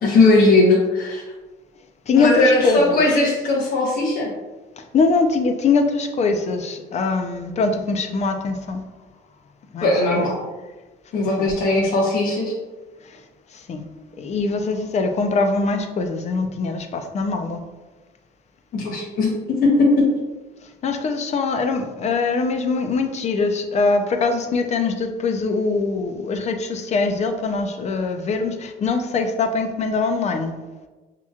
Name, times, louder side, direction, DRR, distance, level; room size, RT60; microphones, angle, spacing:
voice 1, 0.0-1.2 2.2-4.3 9.8-10.4 11.1-12.5 18.7-19.3 19.6-20.0, left 2 dB, 60° left, -4 dB, 0.9 m, -18 dB
voice 2, 2.1-3.0 4.8-8.8 9.7-10.3 11.1-11.5 13.0-13.2 13.5-13.9 14.2-17.6 20.8-30.6, left 4 dB, 40° left, 6 dB, 0.5 m, -22 dB
5.8 x 2.9 x 2.4 m, 1.2 s
cardioid pair, 110°, 17 cm